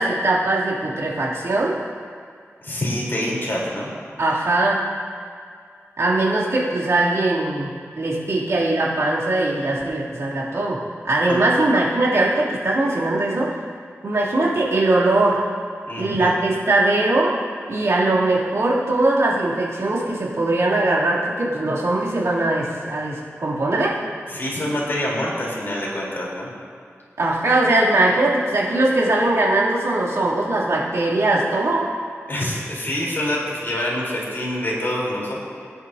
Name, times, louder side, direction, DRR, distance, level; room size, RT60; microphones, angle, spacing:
voice 1, 0.0-1.7 4.2-4.8 6.0-7.7 8.0-13.6 14.0-15.4 16.0-17.3 17.7-24.0 27.2-31.9, right 2 dB, 75° right, -7 dB, 3.0 m, -20 dB
voice 2, 2.6-3.9 11.3-11.4 15.9-16.3 24.3-26.5 32.3-35.4, left 1 dB, 45° left, -5 dB, 3.8 m, -26 dB
23.0 x 11.0 x 2.8 m, 2.2 s
wide cardioid pair, 85°, 5 cm